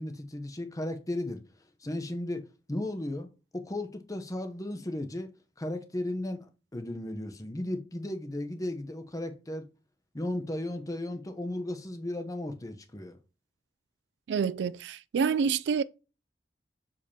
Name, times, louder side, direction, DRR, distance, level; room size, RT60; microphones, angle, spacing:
voice 1, 0.0-1.5 1.8-5.3 5.6-9.7 10.1-13.2, left 1 dB, 20° left, 0.8 m, -35 dB
voice 2, 14.3-15.8, right 6 dB, 70° right, 0.3 m, -27 dB
6.6 x 5.0 x 2.8 m
head